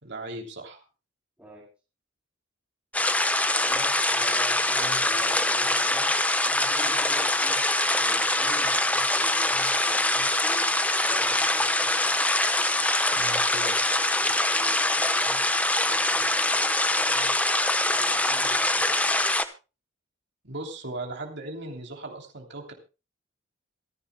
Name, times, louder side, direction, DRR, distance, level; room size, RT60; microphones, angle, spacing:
voice 1, 0.0-0.8 13.1-13.8 20.4-22.7, right 2 dB, 60° right, 2 dB, 3.2 m, -37 dB
voice 2, 1.4-1.7 3.6-10.8 11.0-12.2 14.2-15.5 15.8-17.4 17.7-19.1, equal, 10° right, -8 dB, 7.2 m, -45 dB
sound 1, 2.9-19.4, left 2 dB, 5° left, 1.0 m, -24 dB
26.5 x 10.5 x 2.2 m, 0.31 s
head